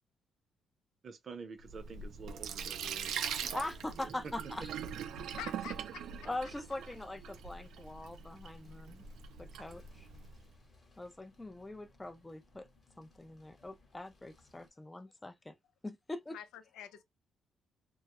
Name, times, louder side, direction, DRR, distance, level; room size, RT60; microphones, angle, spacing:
voice 1, 1.0-3.2, right 5 dB, 50° right, 0.7 m, -48 dB
Sink (filling or washing), 1.6-10.4, right 7 dB, 80° right, 0.3 m, -42 dB
voice 2, 3.3-4.7 6.2-9.0 9.4-10.1 11.0-12.7 13.0-15.5 15.8-16.4, left 2 dB, 15° left, 0.4 m, -42 dB
sound 1, 4.4-14.7, left 3 dB, 30° left, 1.0 m, -64 dB
voice 3, 5.4-6.3 16.3-17.0, left 9 dB, 90° left, 0.4 m, -47 dB
2.2 x 2.0 x 2.9 m
cardioid pair, 90°, 0 cm